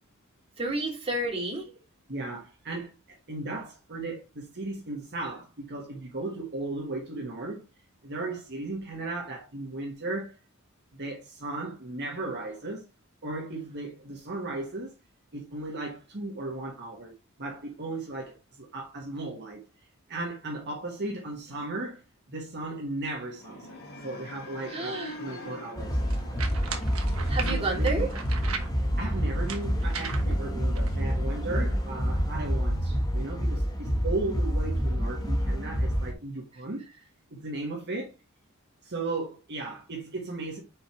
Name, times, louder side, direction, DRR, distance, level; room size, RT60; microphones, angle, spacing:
voice 1, 0.6-1.7 24.7-25.2 27.3-28.1, right 2 dB, 30° right, 2.4 m, -30 dB
voice 2, 2.1-7.6 8.0-10.4 10.9-12.8 13.2-14.9 15.3-17.1 17.4-19.6 20.1-22.0 22.3-26.0 27.4-28.1 29.0-36.8 37.3-38.1 38.8-40.6, right 2 dB, 55° right, 1.5 m, -36 dB
sound 1, 23.4-27.5, left 1 dB, 50° left, 2.2 m, -44 dB
sound 2, 25.8-36.1, equal, 20° left, 1.2 m, -28 dB
sound 3, 25.8-31.1, right 5 dB, 75° right, 1.1 m, -39 dB
5.3 x 4.5 x 4.6 m
head